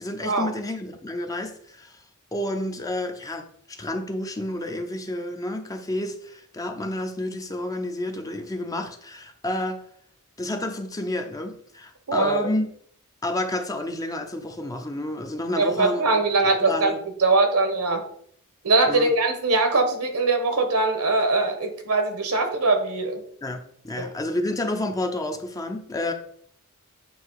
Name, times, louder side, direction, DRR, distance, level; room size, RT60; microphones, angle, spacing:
voice 1, 0.0-2.0 2.3-9.8 10.4-12.7 13.2-16.1 16.6-17.0 18.9-19.1 23.4-23.6 23.8-26.1, left 1 dB, 15° left, 0.6 m, -30 dB
voice 2, 12.1-12.5 15.6-16.9 17.2-18.0 18.6-23.2, right 3 dB, 75° right, 1.1 m, -22 dB
7.8 x 2.9 x 4.7 m
head